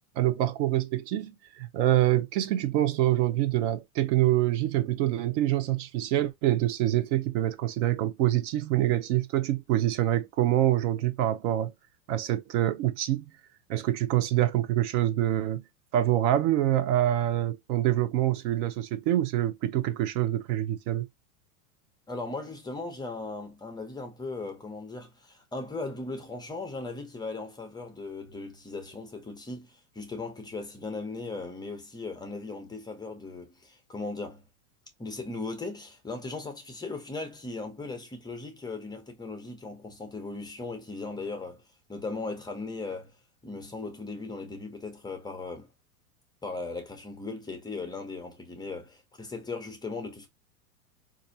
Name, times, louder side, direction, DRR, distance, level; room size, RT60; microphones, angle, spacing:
voice 1, 0.2-1.3 1.6-11.7 12.1-13.3 13.7-15.6 15.9-21.1, right 13 dB, 55° right, 0.6 m, -26 dB
voice 2, 22.1-34.4 35.0-41.6 41.9-43.1 43.4-45.7 46.4-50.3, left 3 dB, 10° left, 0.6 m, -38 dB
4.0 x 2.5 x 2.6 m
supercardioid pair, 125°, 44 cm